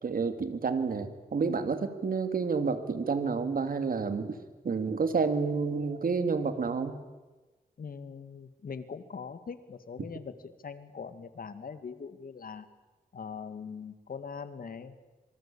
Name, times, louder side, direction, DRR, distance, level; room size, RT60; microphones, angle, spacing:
voice 1, 0.0-4.4 4.6-7.0, right 5 dB, 65° right, 9 dB, 2.9 m, -29 dB
voice 2, 7.8-10.3 10.6-12.7 13.1-15.0, left 6 dB, 65° left, 11 dB, 2.2 m, -41 dB
26.0 x 24.5 x 8.8 m, 1.2 s
cardioid pair, 80°, 16 cm